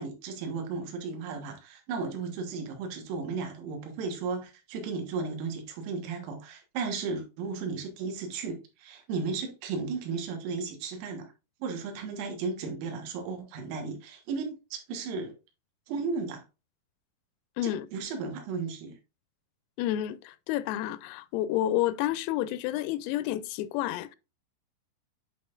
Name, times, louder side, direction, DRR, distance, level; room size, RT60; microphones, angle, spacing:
voice 1, 0.0-11.3 11.6-15.4 15.9-16.4 17.6-18.9, right 4 dB, 90° right, 4.1 m, -35 dB
voice 2, 19.8-24.2, left 13 dB, 90° left, 3.2 m, -30 dB
10.5 x 4.3 x 2.4 m
omnidirectional pair, 5.8 m